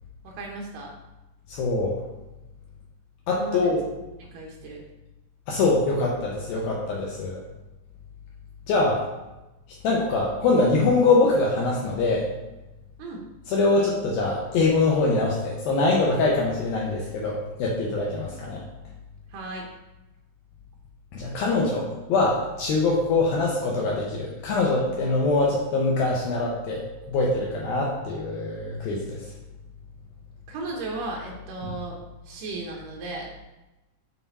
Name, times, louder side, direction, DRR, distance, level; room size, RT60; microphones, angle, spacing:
voice 1, 0.2-0.9 3.3-3.7 4.2-4.8 13.0-13.2 19.3-19.7 30.5-32.0 32.3-33.3, right 3 dB, 85° right, -1 dB, 1.9 m, -35 dB
voice 2, 1.5-2.0 3.3-3.8 5.5-7.4 8.7-9.0 9.8-12.3 13.5-18.6 21.1-29.2, left 3 dB, 80° left, -3 dB, 2.1 m, -23 dB
7.3 x 4.0 x 4.0 m, 1.0 s
omnidirectional pair, 5.2 m